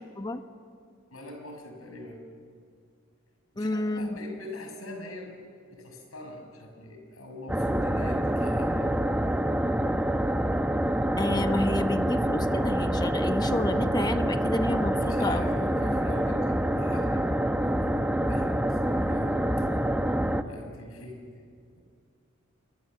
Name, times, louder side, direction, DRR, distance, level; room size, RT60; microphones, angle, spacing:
voice 1, 1.1-2.2 3.5-5.4 5.7-8.9 15.0-19.5 20.4-21.2, left 1 dB, 90° left, 3 dB, 6.0 m, -42 dB
voice 2, 3.6-4.1 11.2-15.5 15.9-16.0, left 1 dB, 20° left, 8 dB, 1.1 m, -30 dB
sound 1, 7.5-20.4, right 1 dB, 5° right, 0.9 m, -26 dB
28.0 x 23.0 x 7.6 m, 2.2 s
head